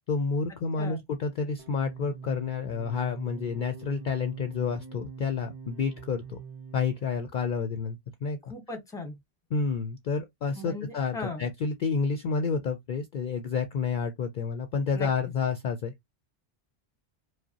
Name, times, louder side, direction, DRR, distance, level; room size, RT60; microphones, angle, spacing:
voice 1, 0.1-6.4 6.7-8.4 9.5-15.9, left 5 dB, 60° left, 0.6 m, -29 dB
sound 1, 1.6-7.3, right 6 dB, 85° right, 1.1 m, -44 dB
voice 2, 8.4-9.2 10.6-11.5 14.9-15.1, left 2 dB, 5° left, 0.8 m, -38 dB
4.9 x 2.0 x 2.8 m
omnidirectional pair, 1.1 m